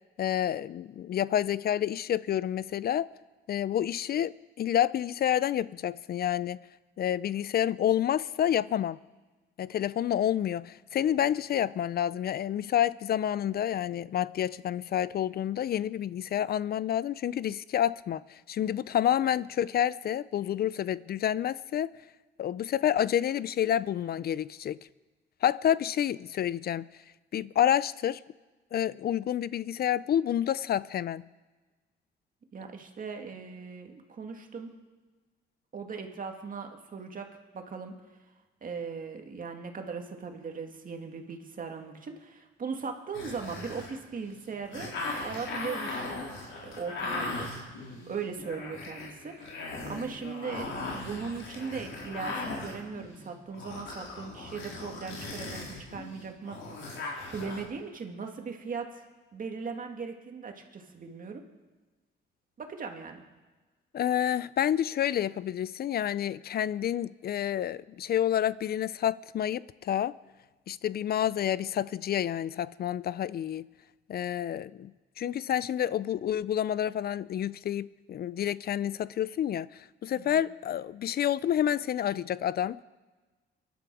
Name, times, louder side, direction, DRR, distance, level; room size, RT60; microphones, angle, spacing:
voice 1, 0.2-3.1 3.5-6.6 7.0-9.0 9.6-21.9 22.4-24.8 25.4-26.9 27.3-28.2 28.7-31.2 63.9-70.2 70.7-73.7 74.1-74.9 75.2-82.8, left 10 dB, 50° left, 0.4 m, -29 dB
voice 2, 32.5-34.7 35.7-37.3 37.5-37.9 38.6-44.9 45.2-46.2 46.6-47.5 48.1-49.5 49.9-56.6 57.3-59.1 59.3-61.4 62.6-63.2 80.2-80.4, right 5 dB, 45° right, 2.2 m, -38 dB
sound 1, 43.1-57.6, left 3 dB, 75° left, 4.1 m, -38 dB
24.0 x 11.5 x 4.8 m
cardioid pair, 90°, 20 cm